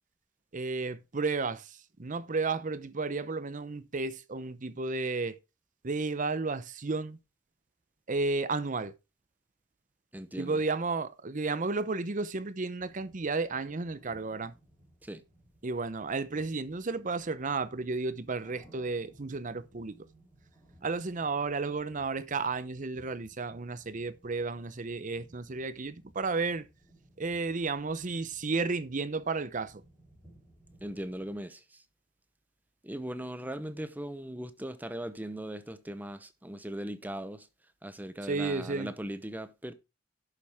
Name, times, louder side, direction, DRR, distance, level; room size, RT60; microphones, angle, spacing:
voice 1, 0.5-1.7 2.0-5.4 5.8-7.2 8.1-8.9 10.4-14.5 15.6-20.1 20.8-26.7 27.2-29.8 38.3-38.9, right 3 dB, 40° right, 0.7 m, -32 dB
voice 2, 10.1-10.6 15.0-15.2 30.8-31.8 32.8-37.5 37.8-39.7, right 1 dB, 10° right, 0.8 m, -39 dB
sound 1, 12.8-31.4, right 1 dB, 15° left, 5.5 m, -61 dB
11.0 x 7.2 x 3.5 m
head